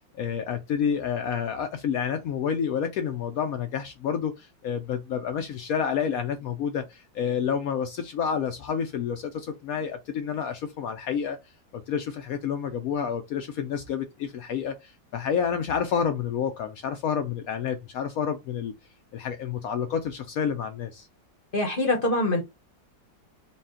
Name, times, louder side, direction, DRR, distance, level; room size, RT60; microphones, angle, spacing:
voice 1, 0.1-11.4 11.7-18.7 19.1-21.1, left 7 dB, 75° left, 0.8 m, -29 dB
voice 2, 21.5-22.4, left 2 dB, 45° left, 0.7 m, -24 dB
4.0 x 2.2 x 3.6 m
omnidirectional pair, 2.0 m